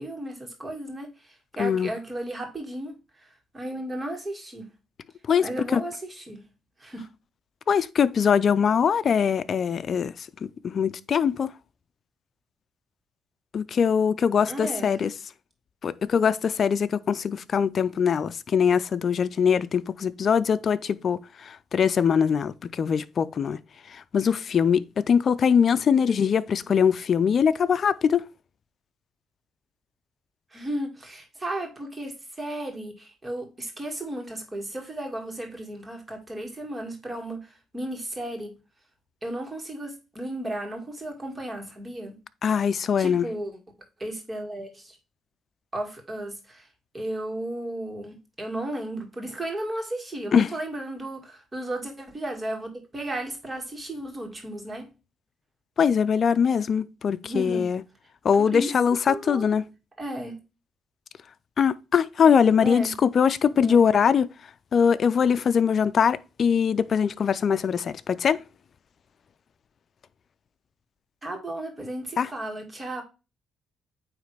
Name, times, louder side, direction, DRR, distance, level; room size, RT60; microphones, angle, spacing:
voice 1, 0.0-2.9 3.5-4.7 5.4-6.4 6.8-7.1 14.5-15.0 25.9-26.3 30.5-37.4 37.7-38.6 39.2-42.2 43.0-43.6 44.0-45.0 45.7-46.7 46.9-54.9 57.2-57.7 58.4-58.7 59.1-59.5 60.0-60.4 62.6-62.9 63.5-63.9 71.2-73.0, right 1 dB, 20° right, 2.1 m, -34 dB
voice 2, 1.6-1.9 5.3-5.8 7.7-10.1 10.4-11.5 13.5-15.1 15.8-23.6 23.9-28.2 42.4-43.3 50.3-50.5 55.8-57.8 58.2-59.6 61.6-64.3 64.7-68.4 72.2-72.3, left 7 dB, 50° left, 0.5 m, -22 dB
9.0 x 3.2 x 3.3 m
cardioid pair, 90°, 0 cm